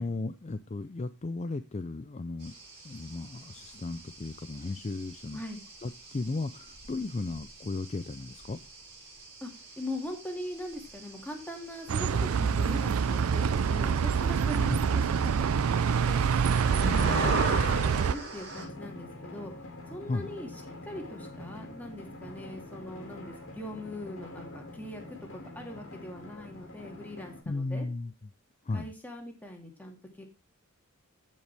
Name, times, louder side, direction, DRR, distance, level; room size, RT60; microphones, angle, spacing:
voice 1, 0.0-2.5 2.8-5.4 5.8-8.6 14.7-14.8 16.8-17.9 20.1-20.3 27.5-28.1 28.6-28.9, left 3 dB, 30° left, 0.5 m, -35 dB
sound 1, 2.4-18.7, right 2 dB, 50° right, 6.5 m, -40 dB
voice 2, 9.8-16.2 16.6-19.5 19.9-20.5 20.8-27.9 28.7-30.2, left 1 dB, 10° left, 2.4 m, -41 dB
Bus, 11.9-18.1, right 6 dB, 75° right, 0.4 m, -26 dB
Drum, 18.5-27.4, left 1 dB, 65° left, 2.5 m, -45 dB
14.5 x 5.4 x 3.4 m
head